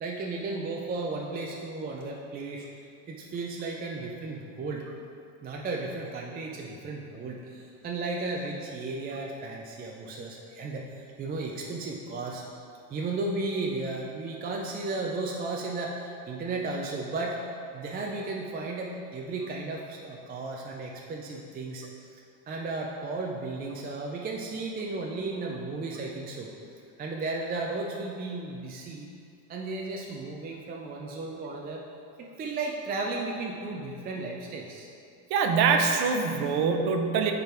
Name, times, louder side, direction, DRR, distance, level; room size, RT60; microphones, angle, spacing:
voice 1, 0.0-2.7 3.1-4.9 5.4-12.4 12.9-17.4 17.7-22.2 22.5-26.5 27.0-29.1 29.5-31.8 32.2-34.9, right 3 dB, 20° right, -1 dB, 0.4 m, -34 dB
voice 2, 35.3-37.3, right 5 dB, 50° right, 5 dB, 0.8 m, -24 dB
9.1 x 3.8 x 4.3 m, 2.4 s
supercardioid pair, 125°, 47 cm